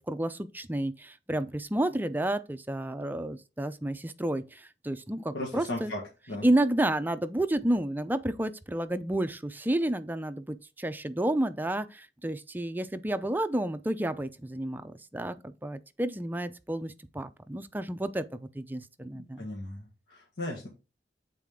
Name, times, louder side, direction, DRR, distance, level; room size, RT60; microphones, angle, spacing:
voice 1, 0.1-5.9 6.4-19.5, right 1 dB, 10° right, 0.4 m, -31 dB
voice 2, 5.3-6.5 19.1-20.7, left 1 dB, 75° left, 1.6 m, -37 dB
7.5 x 4.2 x 3.6 m
head